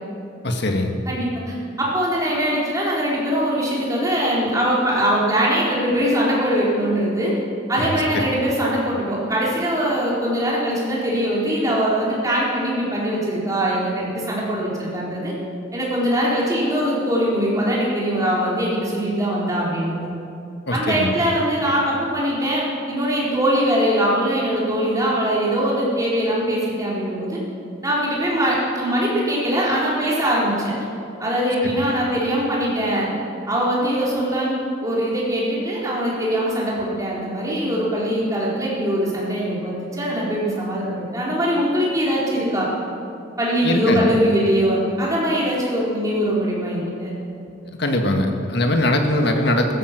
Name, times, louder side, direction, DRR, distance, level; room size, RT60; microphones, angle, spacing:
voice 1, 0.4-0.9 20.7-21.1 43.6-44.1 47.8-49.8, left 1 dB, 55° left, 4 dB, 1.7 m, -21 dB
voice 2, 1.1-7.3 7.7-15.3 15.7-20.1 20.7-27.4 27.8-30.7 31.2-33.1 33.5-42.7 43.4-47.1, equal, 15° right, -6 dB, 4.0 m, -22 dB
15.5 x 14.0 x 6.1 m, 2.6 s
head